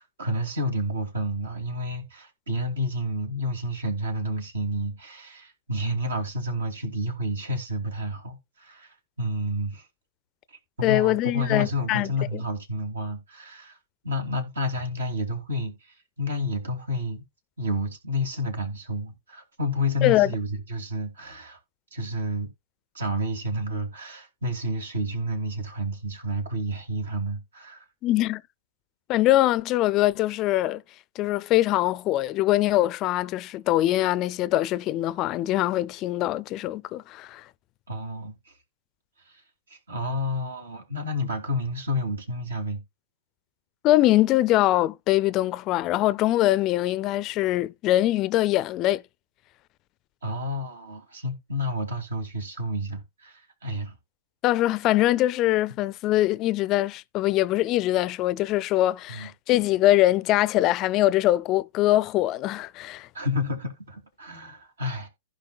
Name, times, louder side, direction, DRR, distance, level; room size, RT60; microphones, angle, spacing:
voice 1, 0.0-9.9 10.5-13.8 14.0-17.2 17.6-21.6 21.9-22.5 22.9-27.9 37.9-38.5 39.2-39.4 39.7-42.8 50.2-54.0 59.1-59.3 63.1-65.1, left 1 dB, 80° right, 2.7 m, -30 dB
voice 2, 10.8-12.4 20.0-20.3 28.0-28.4 29.1-30.8 31.2-37.4 43.8-49.0 54.4-63.1, left 15 dB, 35° left, 0.4 m, -23 dB
15.0 x 5.1 x 2.3 m
hypercardioid pair, 115°, 0 cm